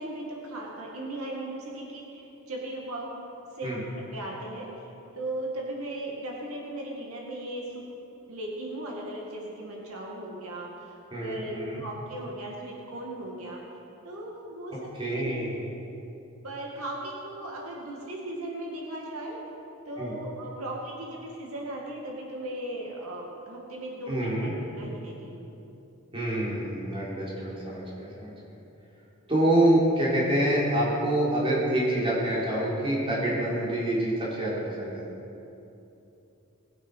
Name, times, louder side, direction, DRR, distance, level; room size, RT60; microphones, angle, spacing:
voice 1, 0.0-3.1 3.5-4.7 5.1-7.9 8.3-13.6 14.0-15.4 16.4-19.4 19.9-24.5 24.8-25.4, right 1 dB, 80° right, -2 dB, 2.1 m, -37 dB
voice 2, 11.1-11.8 15.0-15.7 20.0-20.1 24.1-24.5 26.1-28.3 29.3-35.0, right 1 dB, 25° right, -7 dB, 3.6 m, -26 dB
19.5 x 8.2 x 5.5 m, 2.9 s
head